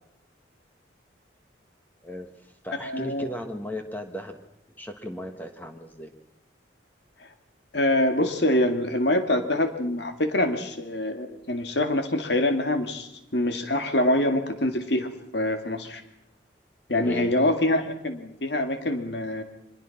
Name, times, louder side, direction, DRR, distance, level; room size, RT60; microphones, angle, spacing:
voice 1, 2.0-4.4 4.8-6.1 17.0-17.3, equal, 10° left, 5 dB, 1.5 m, -36 dB
voice 2, 2.8-3.2 7.7-16.0 16.9-19.4, left 1 dB, 65° left, 7 dB, 2.2 m, -25 dB
24.5 x 21.0 x 5.9 m, 0.83 s
head